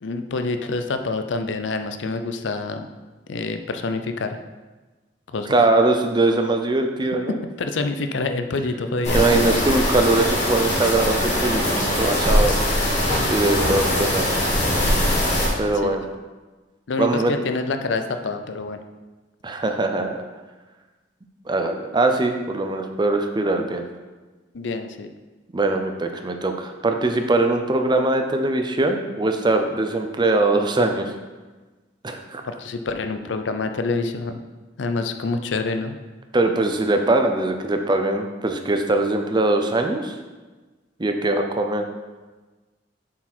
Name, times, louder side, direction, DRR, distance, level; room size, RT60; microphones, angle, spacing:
voice 1, 0.0-2.9 3.3-4.4 5.3-5.5 7.6-9.6 15.8-16.0 16.9-18.8 24.5-25.1 32.4-34.4 34.8-36.0, left 3 dB, 80° left, 7 dB, 0.5 m, -27 dB
voice 2, 5.5-7.4 9.1-12.6 13.3-14.3 15.5-16.0 17.0-17.3 19.4-20.2 21.5-23.8 25.5-31.1 32.0-32.4 36.3-40.2 41.0-41.9, right 2 dB, 25° right, 5 dB, 0.6 m, -21 dB
sound 1, 9.0-15.5, equal, 40° left, 2.2 m, -21 dB
7.2 x 4.8 x 4.3 m, 1.2 s
head